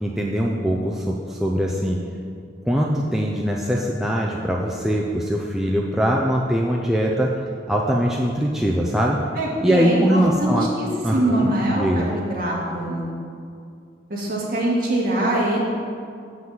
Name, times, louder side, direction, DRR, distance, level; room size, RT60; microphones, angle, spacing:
voice 1, 0.0-2.0 2.7-7.3 7.7-9.2 9.6-10.7 11.0-11.5 11.7-12.1, equal, ahead, -2 dB, 0.5 m, -22 dB
voice 2, 9.4-13.1 14.1-15.6, right 1 dB, 50° right, -5 dB, 2.2 m, -23 dB
7.7 x 6.1 x 7.3 m, 2.4 s
head